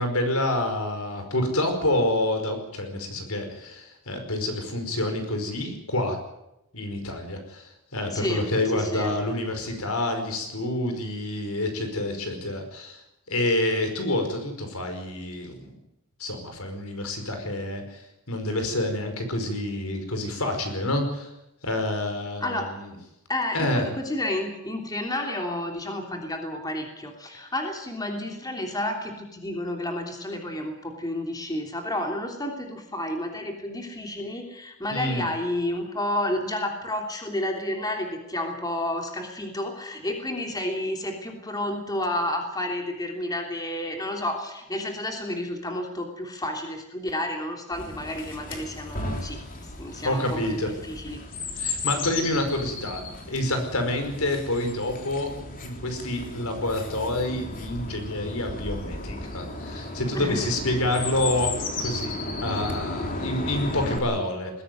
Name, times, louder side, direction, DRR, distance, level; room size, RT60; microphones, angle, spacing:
voice 1, 0.0-6.2 6.7-13.0 13.3-15.7 16.2-18.0 18.3-21.3 21.6-22.9 23.5-23.8 34.9-35.2 50.0-50.7 51.6-53.0 53.3-55.3 55.6-61.5 61.8-64.6, left 1 dB, 75° left, 6 dB, 5.1 m, -28 dB
voice 2, 8.1-8.5 8.7-9.1 22.4-22.7 23.3-49.4 49.8-51.2 60.1-60.5, left 1 dB, 15° left, 3 dB, 3.1 m, -31 dB
Chirp tweet, 47.7-64.0, left 2 dB, 40° left, 3.5 m, -34 dB
21.0 x 16.5 x 9.3 m, 0.88 s
head